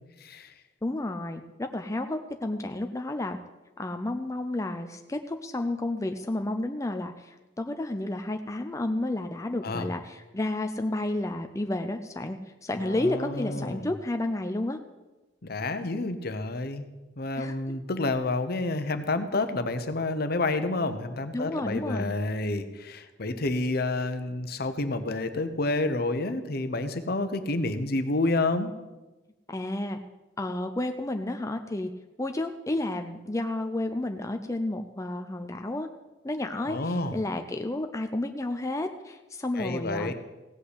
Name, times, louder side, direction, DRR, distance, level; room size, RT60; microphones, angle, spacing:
voice 1, 0.2-0.5 9.6-9.9 12.8-13.9 15.4-16.9 17.2-28.7 36.7-37.1 39.6-40.1, left 2 dB, 55° left, 9 dB, 1.0 m, -29 dB
voice 2, 0.8-3.4 3.8-14.8 17.4-17.8 21.3-22.1 29.5-30.0 30.4-31.9 32.2-35.9 36.2-40.1, left 1 dB, 15° left, 6 dB, 0.5 m, -31 dB
16.5 x 5.6 x 8.2 m, 1.1 s
head